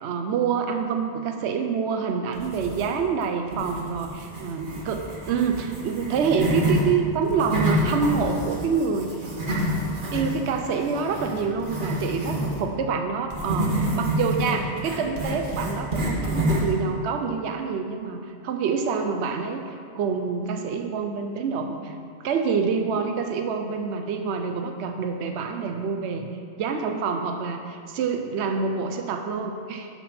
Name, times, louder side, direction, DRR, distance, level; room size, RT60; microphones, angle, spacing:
voice 1, 0.0-9.2 10.1-21.9 22.2-26.3 26.6-29.9, right 5 dB, 75° right, 5 dB, 0.9 m, -27 dB
sound 1, 2.3-3.1 3.5-6.8 7.2-12.6 13.3-16.8, equal, 50° right, 1.6 m, -28 dB
11.5 x 5.8 x 4.2 m, 2.3 s
omnidirectional pair, 1.2 m